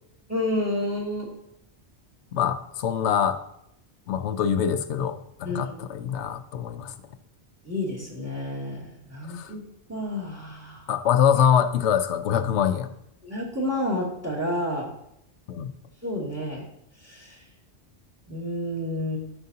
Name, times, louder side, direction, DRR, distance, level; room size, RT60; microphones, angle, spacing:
voice 1, 0.3-1.3 5.4-5.9 7.6-9.6 9.9-10.9 13.2-14.9 16.0-16.6 17.0-17.4 18.3-19.2, left 1 dB, 15° right, -3 dB, 2.5 m, -30 dB
voice 2, 2.3-3.4 4.1-6.9 9.3-9.5 10.9-12.9 15.5-15.7, left 8 dB, 80° left, 10 dB, 0.9 m, -24 dB
13.0 x 5.8 x 2.8 m, 0.78 s
omnidirectional pair, 1.1 m